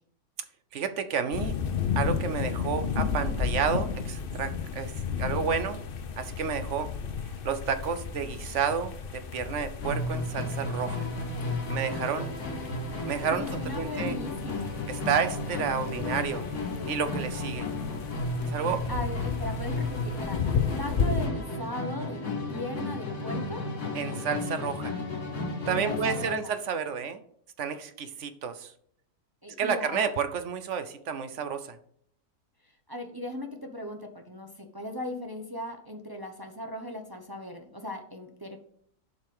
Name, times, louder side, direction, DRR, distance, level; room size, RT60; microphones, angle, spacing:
voice 1, 0.7-1.5 2.0-5.8 6.2-6.9 7.4-11.1 11.7-12.3 13.1-14.2 14.9-16.5 16.9-17.7 18.4-18.9 23.9-24.9 25.7-27.2 27.6-28.7 29.6-31.8, right 6 dB, 55° right, 11 dB, 0.9 m, -30 dB
sound 1, 1.3-21.3, left 6 dB, 50° left, 0.7 m, -33 dB
Musical instrument, 9.8-26.5, left 2 dB, 65° left, 2.5 m, -33 dB
voice 2, 13.0-14.8 18.9-20.4 20.8-22.2 22.5-23.6 25.6-26.5 29.4-30.1 32.9-38.6, left 1 dB, 25° right, 4 dB, 0.5 m, -38 dB
7.5 x 5.4 x 5.3 m, 0.66 s
omnidirectional pair, 1.8 m